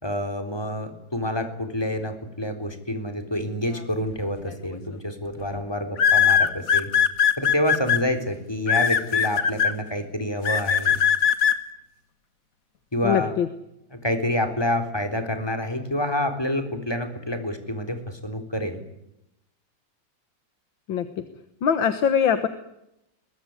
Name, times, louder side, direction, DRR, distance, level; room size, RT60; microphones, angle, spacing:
voice 1, 0.0-6.9 7.4-11.0 12.9-13.3 13.9-18.8, left 1 dB, 10° left, 7 dB, 3.8 m, -28 dB
sound 1, 4.5-4.8 6.0-8.0 8.7-9.7 10.5-11.6, left 8 dB, 45° left, 1.9 m, -19 dB
voice 2, 13.0-13.5 20.9-21.2 21.6-22.5, left 8 dB, 80° left, 11 dB, 2.0 m, -22 dB
22.5 x 22.0 x 9.7 m, 0.84 s
omnidirectional pair, 2.1 m